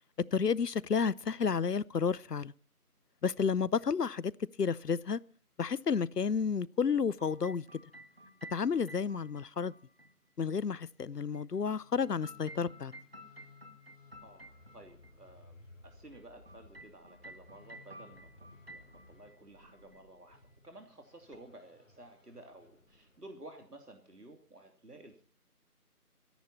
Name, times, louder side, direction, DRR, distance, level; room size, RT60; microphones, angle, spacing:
voice 1, 0.3-2.5 3.2-4.3 4.6-5.2 5.6-7.6 8.5-9.7 10.4-12.9, left 6 dB, 90° left, 0.8 m, -31 dB
sound 1, 7.2-10.1 11.3-15.1 16.1-19.4 19.6-20.0 21.3-21.4, right 1 dB, 40° right, 1.5 m, -53 dB
sound 2, 11.5-23.4, left 3 dB, 55° left, 2.1 m, -60 dB
voice 2, 14.2-18.3 18.7-20.4 20.6-25.2, right 1 dB, 80° right, 3.0 m, -53 dB
25.5 x 10.5 x 4.2 m
figure-of-eight pair, 175°, 46 cm